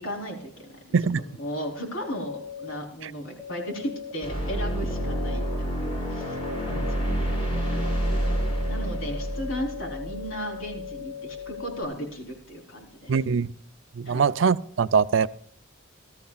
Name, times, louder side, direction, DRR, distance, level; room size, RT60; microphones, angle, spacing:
voice 1, 0.0-1.0 1.3-7.3 7.7-7.9 8.7-13.2 14.1-14.2, equal, 80° left, 1 dB, 3.7 m, -36 dB
sound 1, 2.0-2.8 3.4-4.1 4.9-5.6 6.2-6.9 7.5-11.8, left 8 dB, 10° right, 0.6 m, -39 dB
sound 2, 4.2-10.9, right 1 dB, 30° left, 4.9 m, -28 dB
voice 2, 13.1-13.5 13.9-15.3, right 6 dB, 65° right, 15 dB, 0.5 m, -22 dB
21.0 x 13.0 x 2.3 m, 0.62 s
head